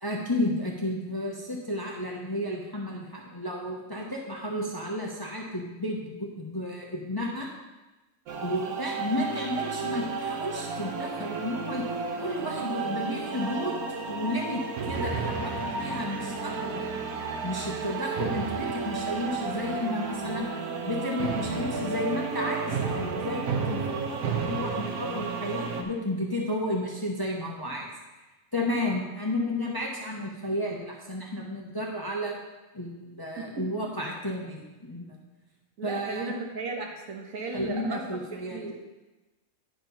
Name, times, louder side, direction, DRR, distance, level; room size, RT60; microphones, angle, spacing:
voice 1, 0.0-7.5 8.4-11.9 12.2-16.8 17.4-20.5 20.8-27.9 28.5-32.4 32.7-35.2 35.8-36.3 37.5-38.8, left 1 dB, 20° left, -2 dB, 0.8 m, -32 dB
sound 1, 8.3-25.8, right 5 dB, 85° right, 1.3 m, -32 dB
voice 2, 35.8-38.2 38.5-38.8, right 3 dB, 65° right, 2 dB, 1.4 m, -35 dB
10.5 x 4.4 x 5.2 m, 1.1 s
omnidirectional pair, 1.5 m